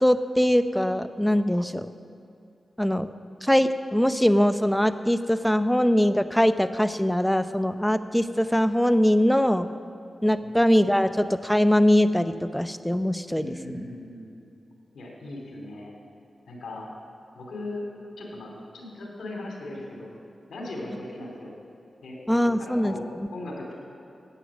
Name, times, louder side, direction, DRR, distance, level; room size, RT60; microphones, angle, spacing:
voice 1, 0.0-1.9 2.8-3.1 3.4-9.7 10.2-13.5 13.7-13.8 22.3-22.9, equal, 5° left, 11 dB, 0.7 m, -22 dB
voice 2, 13.4-14.5 14.9-15.9 16.5-16.9 17.3-17.8 18.2-20.1 20.5-21.5 22.0-22.2 22.6-23.7, left 2 dB, 85° left, -1 dB, 2.8 m, -38 dB
14.5 x 9.3 x 6.2 m, 2.7 s
cardioid pair, 45°, 0 cm